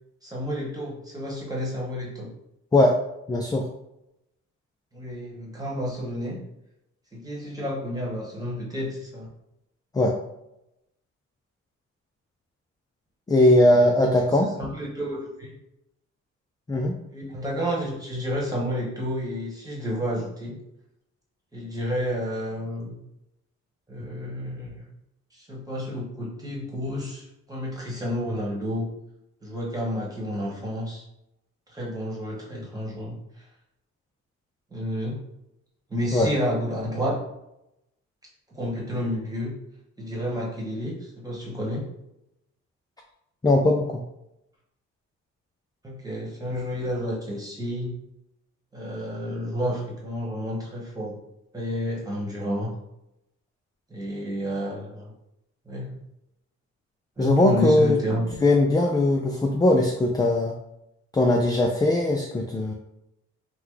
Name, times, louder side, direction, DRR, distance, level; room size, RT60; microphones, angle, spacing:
voice 1, 0.2-2.3 4.9-6.4 7.1-9.3 13.4-15.5 17.1-20.6 21.5-22.9 23.9-24.9 25.3-28.9 29.4-31.0 31.7-33.4 34.7-35.2 35.9-37.2 38.5-39.5 40.0-41.9 45.8-47.9 48.7-51.2 51.5-52.7 53.9-55.1 55.6-56.0 57.2-58.3, equal, 10° right, -4 dB, 1.3 m, -30 dB
voice 2, 3.3-3.7 9.9-10.2 13.3-14.5 16.7-17.0 36.1-36.3 43.4-44.0 57.2-58.0 58.4-60.5 61.1-62.7, left 1 dB, 15° left, 1 dB, 0.3 m, -20 dB
3.0 x 2.2 x 3.7 m, 0.85 s
cardioid pair, 90°, 30 cm